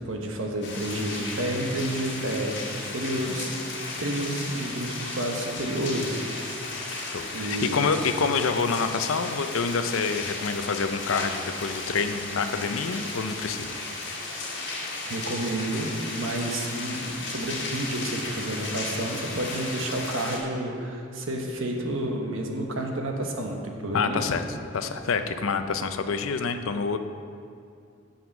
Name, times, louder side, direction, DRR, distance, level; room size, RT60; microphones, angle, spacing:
voice 1, 0.0-3.6 4.0-6.2 7.3-7.7 15.0-24.3, right 1 dB, 75° right, 1 dB, 1.2 m, -30 dB
sound 1, 0.6-20.4, left 2 dB, 60° left, 1.7 m, -35 dB
voice 2, 7.1-13.8 23.9-24.4 24.7-27.0, left 5 dB, 85° left, 9 dB, 0.5 m, -27 dB
7.2 x 6.0 x 7.1 m, 2.4 s
head